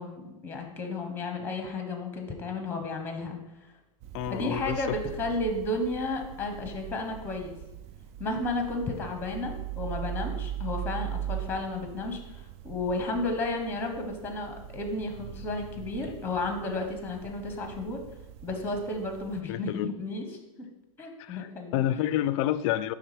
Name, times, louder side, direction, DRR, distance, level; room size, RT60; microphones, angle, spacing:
voice 1, 0.0-3.4 4.3-7.6 8.2-18.0 18.4-20.3 21.0-21.8, left 2 dB, 10° left, 5 dB, 1.0 m, -33 dB
sound 1, 4.0-19.4, right 10 dB, 35° right, 0.4 m, -40 dB
voice 2, 4.1-5.0 19.5-19.9 21.2-21.5 21.7-22.9, left 12 dB, 50° left, 15 dB, 0.4 m, -29 dB
5.5 x 3.5 x 5.0 m, 0.98 s
hypercardioid pair, 110°, 19 cm